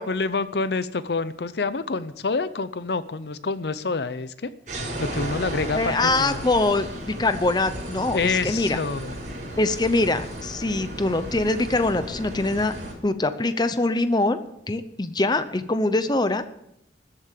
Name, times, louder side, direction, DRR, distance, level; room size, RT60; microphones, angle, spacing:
voice 1, 0.1-4.5 5.0-6.4 8.1-9.2, left 4 dB, 70° left, 14 dB, 0.6 m, -27 dB
sound 1, 4.7-12.9, right 1 dB, 45° right, 6.1 m, -34 dB
voice 2, 5.7-8.8 9.6-12.7 13.0-14.4 14.7-16.4, left 2 dB, 25° left, 11 dB, 0.7 m, -23 dB
13.5 x 8.5 x 7.6 m, 0.80 s
head